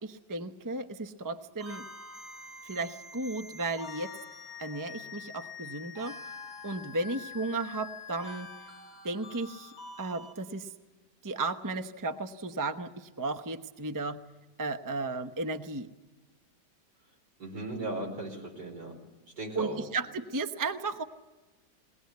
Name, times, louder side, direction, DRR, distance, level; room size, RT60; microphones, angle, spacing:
voice 1, 0.0-1.8 2.6-4.2 4.6-6.2 6.6-8.5 9.0-10.7 11.2-14.2 14.6-15.9 19.5-21.0, right 3 dB, 20° right, 7 dB, 0.6 m, -34 dB
sound 1, 1.6-10.3, left 4 dB, 40° right, 6.9 m, -45 dB
voice 2, 17.4-18.9 19.4-19.9, right 2 dB, 70° right, 0 dB, 5.8 m, -37 dB
22.0 x 19.0 x 9.4 m, 1.2 s
omnidirectional pair, 1.8 m